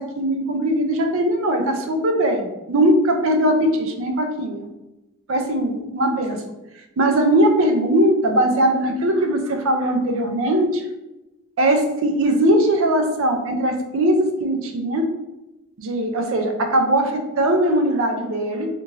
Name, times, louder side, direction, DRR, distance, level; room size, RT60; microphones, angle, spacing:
voice 1, 0.0-4.7 5.3-6.4 7.0-10.8 11.6-15.1 15.8-18.7, right 1 dB, 65° right, 4 dB, 0.4 m, -20 dB
2.9 x 2.5 x 2.5 m, 0.99 s
head